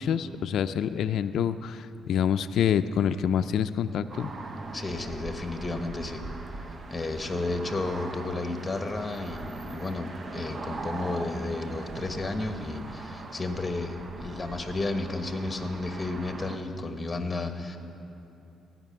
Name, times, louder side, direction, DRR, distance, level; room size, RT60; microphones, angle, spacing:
voice 1, 0.0-4.3, left 8 dB, 70° left, 9 dB, 0.4 m, -27 dB
sound 1, 4.1-16.6, right 3 dB, 40° right, 0.8 m, -40 dB
voice 2, 4.7-17.8, left 2 dB, 20° left, 6 dB, 1.2 m, -32 dB
16.0 x 6.0 x 9.6 m, 2.8 s
cardioid pair, 90°, 0 cm